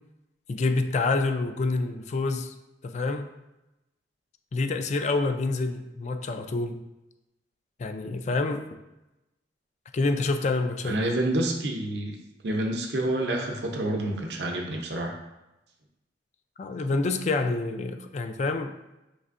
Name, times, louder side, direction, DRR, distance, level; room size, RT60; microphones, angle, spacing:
voice 1, 0.5-2.5 2.8-3.3 4.5-6.8 7.8-8.7 9.9-11.1 16.6-18.7, left 3 dB, 40° left, 7 dB, 0.3 m, -27 dB
voice 2, 10.8-12.2 12.4-15.1, right 1 dB, 70° right, 2 dB, 0.7 m, -28 dB
5.3 x 3.3 x 2.5 m, 0.96 s
head